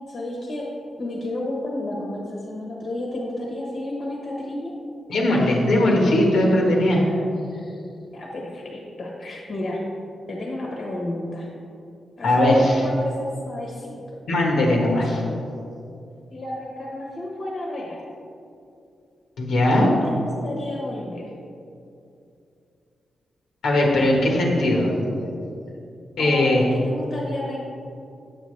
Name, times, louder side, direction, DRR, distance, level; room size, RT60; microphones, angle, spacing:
voice 1, 0.1-0.7 1.0-4.7 8.1-9.8 10.3-11.5 12.2-14.0 16.3-18.0 19.8-21.3 26.2-27.6, left 1 dB, 45° left, -2 dB, 1.2 m, -31 dB
voice 2, 5.1-7.0 12.2-12.8 14.3-15.2 19.4-19.9 23.6-24.9 26.2-26.6, left 1 dB, 85° left, -2 dB, 1.4 m, -19 dB
8.5 x 7.0 x 3.3 m, 2.6 s
wide cardioid pair, 160°, 0 cm